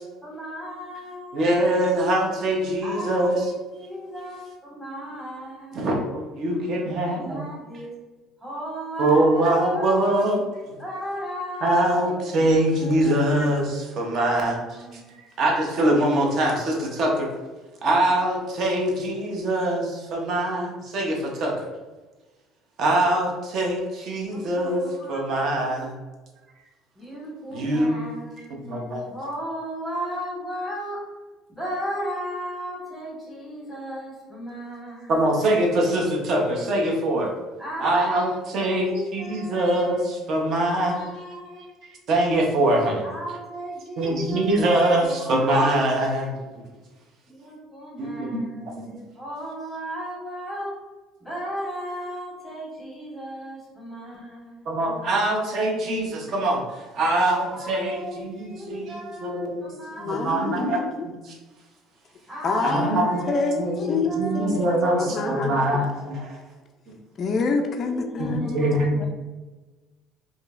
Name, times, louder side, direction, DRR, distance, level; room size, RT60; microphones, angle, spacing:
voice 1, 0.2-1.6 2.8-5.9 6.8-7.9 8.4-10.1 10.8-13.3 14.2-15.1 24.3-25.7 26.9-31.1 31.5-35.2 37.6-39.7 40.3-41.7 43.0-46.5 47.3-50.8 51.2-54.7 57.5-60.7 62.3-66.2 67.8-69.1, equal, 5° right, -6 dB, 1.3 m, -36 dB
voice 2, 1.3-3.5 5.7-7.4 9.0-10.8 11.6-14.6 14.9-17.3 17.8-21.6 22.8-25.9 27.5-28.0 28.6-29.1 35.1-37.3 37.8-41.1 42.1-43.0 44.0-46.4 48.0-48.4 48.8-48.9 54.7-59.7 60.0-61.4 62.6-63.3 63.6-66.4 66.9-67.0 68.2-69.1, right 1 dB, 40° right, 0 dB, 0.7 m, -23 dB
voice 3, 60.0-61.0 62.4-64.7 65.0-65.7 67.2-68.6 69.0-69.1, left 4 dB, 30° left, 3 dB, 0.3 m, -27 dB
4.9 x 2.7 x 2.4 m, 1.2 s
cardioid pair, 180°, 0 cm